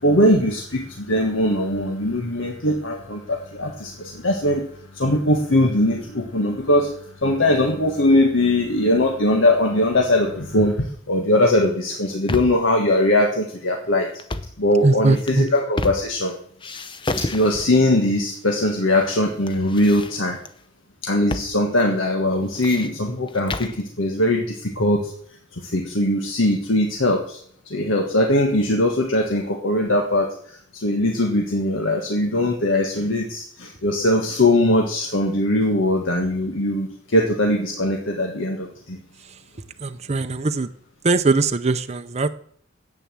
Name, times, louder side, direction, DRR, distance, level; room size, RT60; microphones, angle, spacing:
voice 1, 0.0-4.7 4.9-6.9 7.2-14.1 14.6-16.4 17.2-20.4 21.0-25.1 25.5-27.4 27.7-39.0, left 1 dB, 75° left, 2 dB, 1.5 m, -21 dB
sound 1, 11.9-12.7 14.1-14.6 15.1-16.3 16.6-17.9 18.6-19.2 19.5-20.5 21.3-21.5 21.8-21.9 22.3-23.8, left 2 dB, 25° left, 0.8 m, -31 dB
voice 2, 14.8-15.5 39.8-40.7 41.0-42.3, right 3 dB, 35° right, 8 dB, 0.6 m, -20 dB
10.5 x 8.4 x 7.5 m, 0.63 s
head